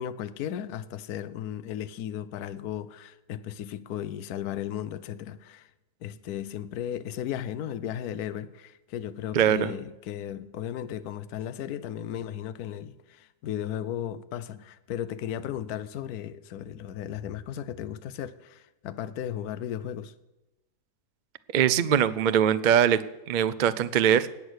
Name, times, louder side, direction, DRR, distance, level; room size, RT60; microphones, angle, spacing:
voice 1, 0.0-5.7 6.0-20.1, left 10 dB, 75° left, 1.1 m, -35 dB
voice 2, 9.3-9.7 21.5-23.0 23.3-24.3, right 9 dB, 80° right, 0.4 m, -22 dB
19.0 x 8.2 x 6.4 m
omnidirectional pair, 1.7 m